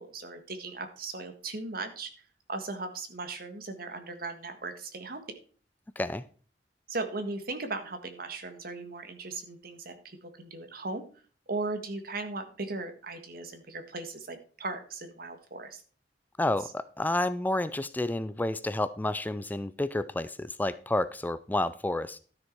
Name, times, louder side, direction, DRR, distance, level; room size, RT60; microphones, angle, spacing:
voice 1, 0.0-2.1 2.5-5.2 6.9-11.0 11.5-15.8, right 3 dB, 55° right, 7 dB, 1.8 m, -37 dB
voice 2, 16.4-22.2, left 1 dB, 10° left, 14 dB, 0.4 m, -30 dB
12.5 x 6.5 x 4.6 m, 0.41 s
head